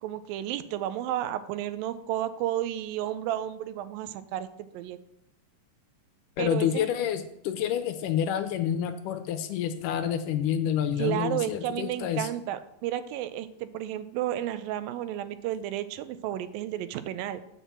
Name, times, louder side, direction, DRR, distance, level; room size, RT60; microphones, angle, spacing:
voice 1, 0.0-4.5 4.7-5.0 6.4-6.9 11.0-17.4, right 12 dB, 85° right, 13 dB, 2.4 m, -32 dB
voice 2, 6.4-12.3, left 9 dB, 80° left, 8 dB, 2.0 m, -28 dB
7.4 x 5.6 x 7.2 m, 0.78 s
omnidirectional pair, 4.0 m